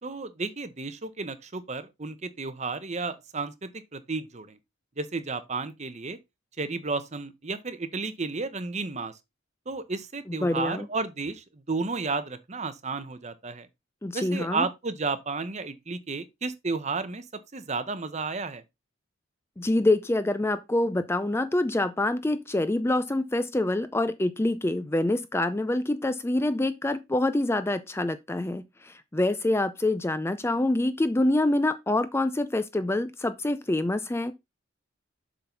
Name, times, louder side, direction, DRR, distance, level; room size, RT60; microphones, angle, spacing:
voice 1, 0.0-4.6 5.0-6.2 6.6-9.1 9.7-13.7 14.1-17.2 17.5-18.6, right 4 dB, 35° right, 0.9 m, -32 dB
voice 2, 10.3-10.9 14.0-14.7 19.6-34.3, left 1 dB, 15° left, 0.4 m, -26 dB
7.5 x 3.9 x 5.8 m
head